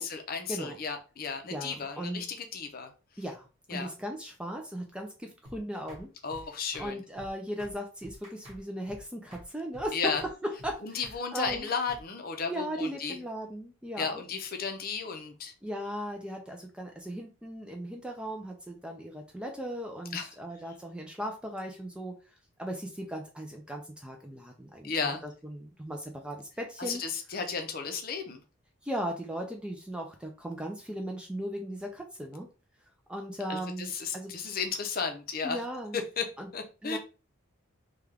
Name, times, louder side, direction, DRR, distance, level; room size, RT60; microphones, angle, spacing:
voice 1, 0.0-2.9 3.7-3.9 6.2-7.0 9.9-10.2 10.8-13.2 14.0-15.5 20.1-20.3 24.8-25.2 26.8-28.4 33.5-35.6 36.2-36.3 36.5-37.0, left 5 dB, 45° left, 5 dB, 0.6 m, -34 dB
voice 2, 1.5-2.3 3.2-6.1 6.8-10.1 10.4-11.0 11.3-11.7 12.4-14.2 15.6-22.2 22.6-24.9 25.2-27.0 28.8-32.5 33.1-34.3 35.4-36.0 36.4-36.5 36.8-37.0, equal, 5° right, 2 dB, 0.3 m, -37 dB
sound 1, 5.4-5.6 5.9-6.0 6.3-6.5 6.7-6.9 7.2-7.3 7.6-7.7 8.0-8.6 8.9-9.0 9.3-9.5 9.7-9.9 10.2-10.3 10.6-10.7 11.0-11.2 11.4-12.0, equal, 35° right, 1.1 m, -48 dB
3.3 x 2.3 x 3.3 m, 0.32 s
head